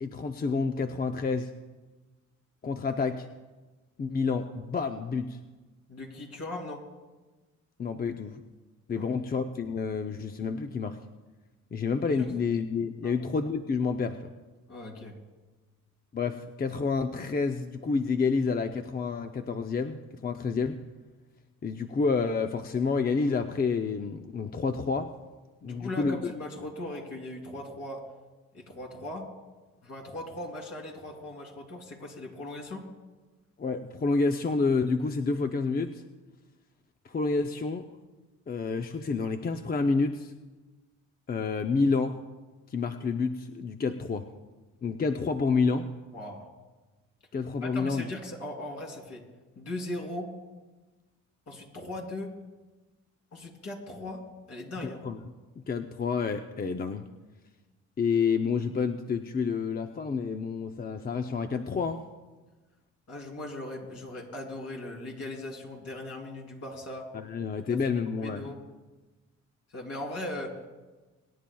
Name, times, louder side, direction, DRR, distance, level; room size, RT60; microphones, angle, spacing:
voice 1, 0.0-1.5 2.6-3.3 4.0-5.4 7.8-8.4 8.9-11.0 11.7-14.3 16.1-20.8 21.6-25.1 25.6-26.3 33.6-36.0 37.1-37.8 38.5-40.3 41.3-42.2 42.7-44.3 44.8-45.9 47.3-48.0 54.8-55.2 55.6-57.1 58.0-62.0 67.1-68.5, left 4 dB, 30° left, 6 dB, 0.6 m, -29 dB
voice 2, 5.9-6.8 8.9-9.1 12.2-12.4 13.0-13.2 14.7-15.2 25.6-28.0 28.5-29.3 29.8-32.8 46.1-46.5 47.6-49.2 49.6-50.3 51.5-52.3 53.3-54.2 54.5-55.0 63.1-67.1 67.7-67.8 68.2-68.6 69.7-70.7, left 1 dB, 55° left, 0 dB, 3.1 m, -39 dB
25.0 x 10.5 x 2.3 m, 1.2 s
cardioid pair, 90°, 30 cm